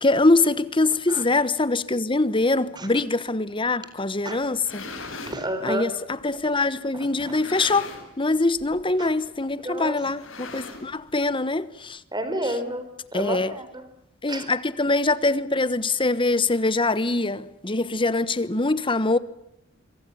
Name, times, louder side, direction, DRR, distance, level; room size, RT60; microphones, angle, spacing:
voice 1, 0.0-4.9 5.6-7.9 8.2-12.0 13.1-13.5 14.2-19.2, left 2 dB, 25° left, 1.2 m, -23 dB
sound 1, 4.4-5.4 6.2-6.3 7.2-8.2 8.5-8.8 9.1-9.2 10.0-11.1, left 3 dB, 80° left, 7.1 m, -39 dB
voice 2, 5.3-5.9 7.2-7.3 9.0-9.1 9.6-10.0 12.1-13.7 14.3-14.5, right 1 dB, 20° right, 4.4 m, -30 dB
26.5 x 25.0 x 7.1 m
head